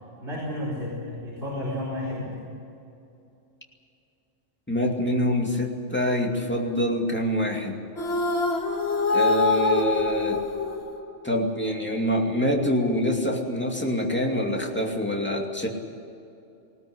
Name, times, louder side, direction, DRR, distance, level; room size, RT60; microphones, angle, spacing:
voice 1, 0.2-2.4, left 1 dB, 45° right, -5 dB, 4.9 m, -32 dB
voice 2, 4.7-7.8 9.1-10.4 11.2-15.7, equal, 10° left, 0 dB, 2.5 m, -25 dB
sound 1, 8.0-11.4, left 4 dB, 60° left, 2.2 m, -25 dB
19.5 x 18.0 x 9.8 m, 2.7 s
omnidirectional pair, 1.3 m